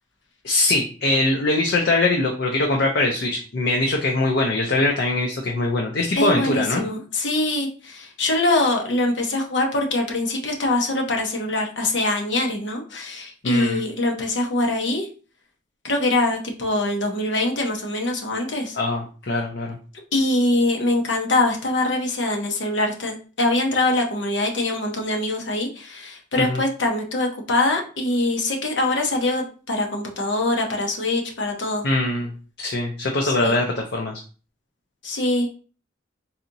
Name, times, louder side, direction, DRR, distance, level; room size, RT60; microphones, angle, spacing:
voice 1, 0.4-6.9 13.4-13.8 18.7-19.8 26.4-26.6 31.8-32.3 32.6-34.1, left 2 dB, 65° left, 0 dB, 0.6 m, -22 dB
voice 2, 6.1-15.1 15.8-18.8 20.1-31.8 33.2-33.5 35.0-35.5, left 2 dB, 90° left, 2 dB, 0.9 m, -23 dB
4.1 x 2.8 x 2.6 m, 0.37 s
head